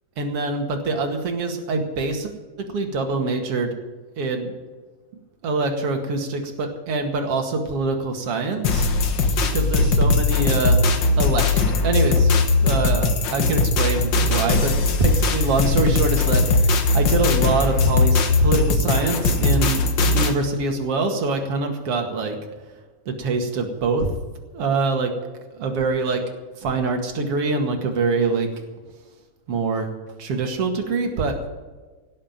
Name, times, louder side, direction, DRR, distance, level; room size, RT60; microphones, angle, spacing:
voice 1, 0.2-2.3 2.7-3.7 4.2-4.5 5.4-8.9 9.5-10.8 11.2-11.5 11.8-12.3 12.6-19.8 20.1-22.4 23.1-24.1 24.5-25.1 25.5-26.2 26.6-28.5 29.5-31.4, right 3 dB, 50° right, 4 dB, 2.8 m, -24 dB
sound 1, 8.6-20.3, left 3 dB, 55° left, 1.3 m, -19 dB
17.5 x 7.7 x 9.0 m, 1.3 s
omnidirectional pair, 3.6 m